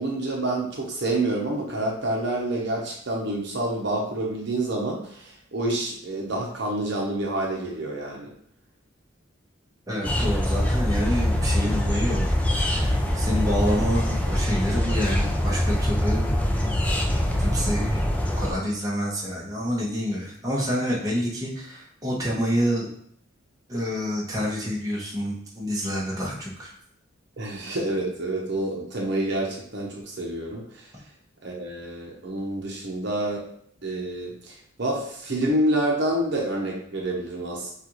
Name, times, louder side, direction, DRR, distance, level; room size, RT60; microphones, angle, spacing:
voice 1, 0.0-8.3 27.4-30.9 31.4-33.5 33.8-37.7, right 1 dB, 60° right, -1 dB, 0.9 m, -28 dB
voice 2, 9.9-12.4 12.6-16.3 16.6-16.7 17.4-18.0 18.4-22.9 23.7-26.7, equal, 20° right, -4 dB, 1.1 m, -28 dB
sound 1, 10.0-18.5, left 1 dB, 5° left, 0.4 m, -24 dB
6.5 x 2.4 x 3.1 m, 0.66 s
head